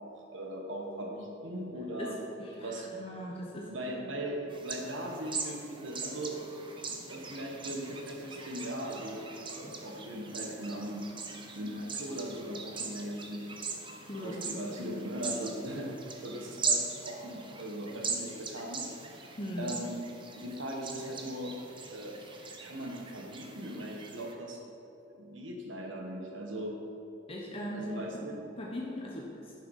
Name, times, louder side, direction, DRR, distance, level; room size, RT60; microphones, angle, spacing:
voice 1, 0.0-2.2 2.6-2.9 3.7-6.4 7.1-11.1 11.6-13.5 14.2-18.9 19.6-20.0 20.4-21.5 21.9-22.2 22.6-24.6 25.1-26.7 27.7-28.4, right 1 dB, 85° right, 1 dB, 1.6 m, -39 dB
voice 2, 2.0-3.7 14.0-14.9 19.4-19.7 27.3-28.1 28.6-29.5, left 1 dB, 30° left, -3 dB, 1.0 m, -40 dB
sound 1, 4.5-24.3, right 4 dB, 25° right, 0.9 m, -40 dB
10.5 x 6.5 x 5.6 m, 2.9 s
head